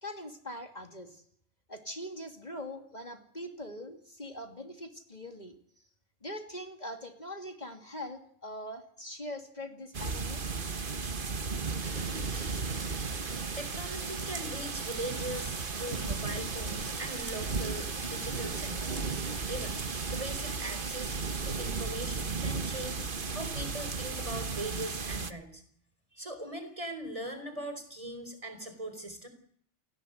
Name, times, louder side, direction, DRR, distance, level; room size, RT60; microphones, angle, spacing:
voice 1, 0.0-1.2 1.7-5.6 6.2-10.5, left 1 dB, 40° left, 6 dB, 2.7 m, -42 dB
sound 1, 9.9-25.3, right 4 dB, 50° right, 1.5 m, -35 dB
sound 2, 11.8-21.9, right 4 dB, 75° right, 2.6 m, -46 dB
voice 2, 13.0-19.0 19.5-19.8 20.1-21.2 21.4-23.1 23.3-25.6 26.1-29.3, right 1 dB, 30° right, 9 dB, 4.4 m, -40 dB
28.5 x 19.5 x 8.1 m, 0.63 s
omnidirectional pair, 1.2 m